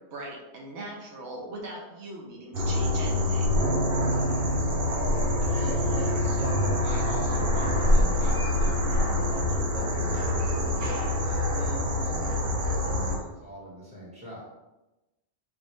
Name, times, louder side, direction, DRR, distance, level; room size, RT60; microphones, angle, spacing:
voice 1, 0.1-3.6, right 1 dB, 85° right, -1 dB, 1.1 m, -40 dB
sound 1, 2.5-13.2, left 1 dB, 60° right, 0.9 m, -25 dB
voice 2, 4.6-14.4, equal, 5° right, -7 dB, 1.2 m, -40 dB
3.5 x 2.5 x 3.1 m, 1.0 s
omnidirectional pair, 1.2 m